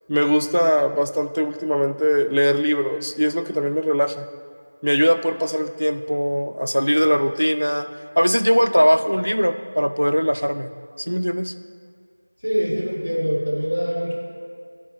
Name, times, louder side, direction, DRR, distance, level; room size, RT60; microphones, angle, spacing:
voice 1, 0.1-4.3 4.8-7.9 8.2-10.7 11.1-11.5, equal, 85° left, 10 dB, 0.3 m, -20 dB
voice 2, 12.4-14.1, equal, 50° right, -4 dB, 1.6 m, -23 dB
7.1 x 4.5 x 5.6 m, 2.2 s
figure-of-eight pair, 180°, 0 cm